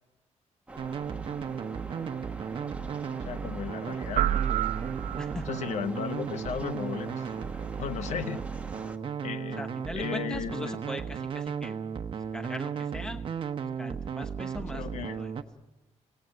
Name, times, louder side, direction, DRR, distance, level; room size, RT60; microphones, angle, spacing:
sound 1, 0.7-9.0, right 2 dB, 10° right, 1.4 m, -44 dB
sound 2, 0.8-15.4, right 7 dB, 45° right, 1.1 m, -35 dB
voice 1, 3.2-4.4 5.5-7.3 7.8-8.4 9.2-9.6 9.9-10.8 14.7-15.2, left 8 dB, 70° left, 13 dB, 0.9 m, -35 dB
sound 3, 4.2-5.7, right 11 dB, 80° right, 0.9 m, -28 dB
voice 2, 9.6-11.8 12.3-13.5 13.8-15.3, equal, 5° left, 7 dB, 0.9 m, -40 dB
26.5 x 18.0 x 9.5 m, 1.2 s
cardioid pair, 145°, 12 cm